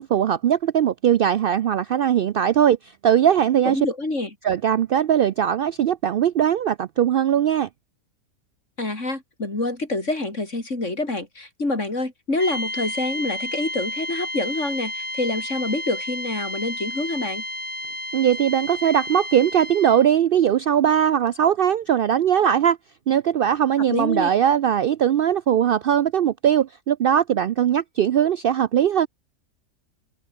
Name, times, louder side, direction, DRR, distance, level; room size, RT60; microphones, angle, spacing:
voice 1, 0.0-2.8 3.0-3.8 4.4-7.7 18.1-22.8 23.1-29.1, right 9 dB, 85° right, 0.5 m, -20 dB
voice 2, 3.7-4.3 8.8-17.4 23.9-24.3, left 2 dB, 55° left, 5.2 m, -26 dB
sound 1, 12.4-20.1, left 1 dB, 5° left, 1.9 m, -32 dB
omnidirectional pair, 1.5 m